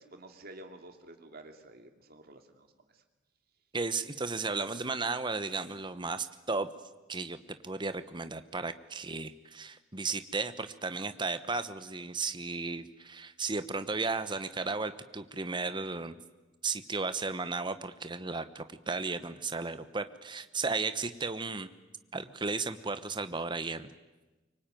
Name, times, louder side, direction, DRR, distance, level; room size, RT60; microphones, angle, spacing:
voice 1, 0.0-3.0, right 1 dB, 50° right, 5 dB, 2.7 m, -51 dB
voice 2, 3.7-6.7 7.1-7.4 7.6-16.2 16.6-21.7 22.1-23.9, right 3 dB, 25° right, 11 dB, 1.1 m, -34 dB
24.5 x 24.0 x 9.2 m, 1.1 s
head